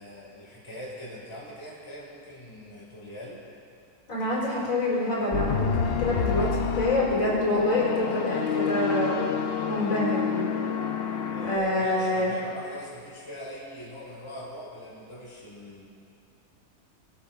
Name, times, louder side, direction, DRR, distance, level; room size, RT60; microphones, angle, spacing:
voice 1, 0.0-3.4 11.3-15.9, left 1 dB, 20° left, -5 dB, 1.9 m, -42 dB
voice 2, 4.1-9.2 9.7-10.5 11.4-12.3, left 1 dB, 55° left, -6 dB, 4.1 m, -26 dB
sound 1, 5.3-11.6, left 7 dB, 85° left, 0.5 m, -28 dB
24.5 x 9.4 x 2.4 m, 2.4 s
omnidirectional pair, 1.7 m